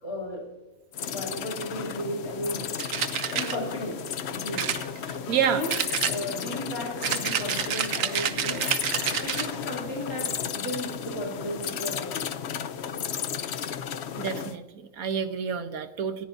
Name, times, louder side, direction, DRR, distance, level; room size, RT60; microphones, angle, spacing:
voice 1, 0.0-0.5 1.0-2.8 3.1-4.8 5.4-5.8 6.1-8.7 9.0-12.3, left 1 dB, 90° left, -2 dB, 3.8 m, -35 dB
sound 1, 0.9-14.6, left 8 dB, 55° left, 0.9 m, -34 dB
sound 2, 2.8-3.6 4.6-5.4 5.7-6.5 7.0-9.5, right 8 dB, 70° right, 1.2 m, -29 dB
voice 2, 5.3-5.6 14.2-16.3, right 7 dB, 85° right, 8 dB, 1.5 m, -28 dB
27.0 x 14.5 x 2.7 m, 1.1 s
omnidirectional pair, 1.5 m